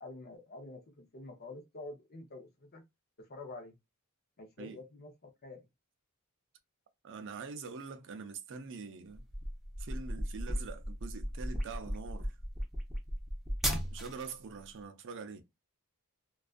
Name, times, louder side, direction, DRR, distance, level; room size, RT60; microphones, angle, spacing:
voice 1, 0.0-2.8 3.2-3.8 4.4-5.7, left 2 dB, 45° left, 0.7 m, -48 dB
voice 2, 7.0-9.2 9.8-12.4 13.9-15.4, right 5 dB, 55° right, 0.5 m, -44 dB
sound 1, 9.1-14.3, equal, ahead, 0.6 m, -36 dB
2.5 x 2.3 x 2.3 m
head